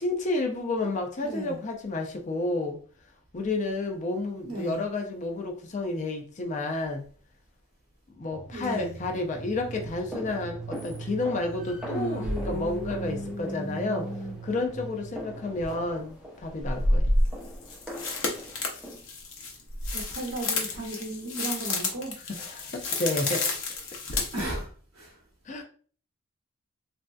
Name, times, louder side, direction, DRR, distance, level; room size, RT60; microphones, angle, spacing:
voice 1, 0.0-2.8 3.3-7.1 8.2-14.1 14.4-17.1 22.3-23.5 24.1-24.3 25.5-25.6, left 2 dB, 35° left, 0.5 m, -31 dB
voice 2, 1.2-1.6 4.5-4.8 8.5-9.0 11.9-14.4 19.9-22.1 23.2-23.6 24.3-25.2, right 1 dB, 85° right, 0.8 m, -35 dB
sound 1, 8.3-16.1, right 4 dB, 30° right, 0.3 m, -42 dB
sound 2, 9.7-19.0, equal, 5° right, 0.7 m, -41 dB
sound 3, 15.6-15.7 16.6-24.4, left 2 dB, 80° left, 0.7 m, -29 dB
3.2 x 2.6 x 2.3 m
head